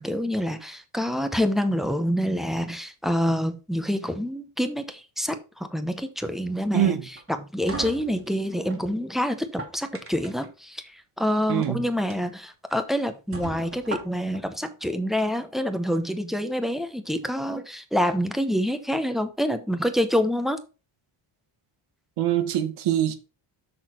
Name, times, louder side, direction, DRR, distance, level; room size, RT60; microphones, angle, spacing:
voice 1, 0.0-7.0 7.3-20.6, equal, ahead, 0.7 m, -27 dB
sound 1, 7.1-8.8 9.4-10.5 11.5-11.7 12.1-12.2 12.7-12.8 13.3-14.4, right 3 dB, 25° right, 1.6 m, -37 dB
voice 2, 22.2-23.1, right 11 dB, 90° right, 1.4 m, -23 dB
6.3 x 6.1 x 4.4 m
cardioid pair, 140°, 49 cm